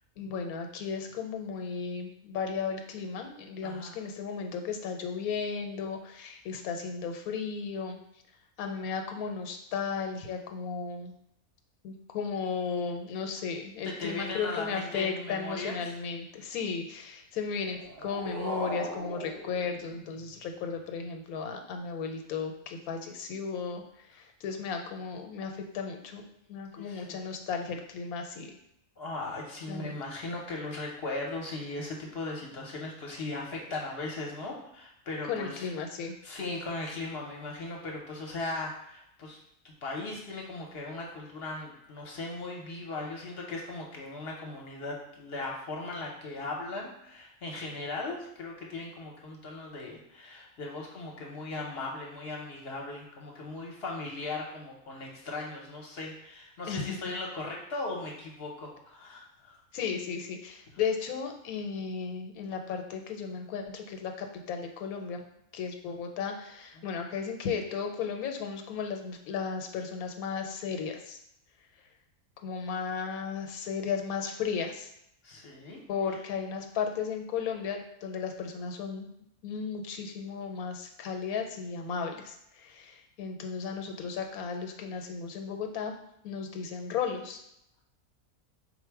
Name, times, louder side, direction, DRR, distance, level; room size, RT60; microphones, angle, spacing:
voice 1, 0.2-8.0 8.6-11.1 11.8-28.5 29.7-29.9 35.2-36.1 56.7-57.0 59.7-65.2 65.5-71.2 72.4-74.9 75.9-79.1 79.4-85.9 86.2-87.4, left 6 dB, 85° left, 4 dB, 1.1 m, -35 dB
voice 2, 3.6-3.9 13.8-15.8 26.7-27.4 29.0-35.7 36.2-59.6 66.8-66.9 75.2-75.8, left 2 dB, 55° left, -1 dB, 0.8 m, -38 dB
sound 1, 17.6-20.6, right 2 dB, 55° right, 0.7 m, -39 dB
4.2 x 2.1 x 4.5 m, 0.77 s
omnidirectional pair, 1.5 m